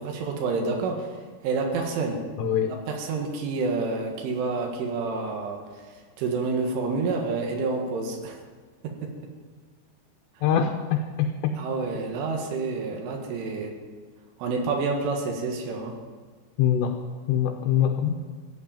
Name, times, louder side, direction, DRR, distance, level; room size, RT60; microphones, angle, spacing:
voice 1, 0.0-2.2 2.7-8.4 8.8-9.3 10.4-10.5 11.6-13.8 14.4-16.0, right 4 dB, 85° right, 2 dB, 4.3 m, -29 dB
voice 2, 2.4-2.7 10.4-11.5 16.6-17.0 17.3-18.1, left 9 dB, 75° left, 3 dB, 2.8 m, -23 dB
16.0 x 8.5 x 8.8 m, 1.5 s
omnidirectional pair, 5.5 m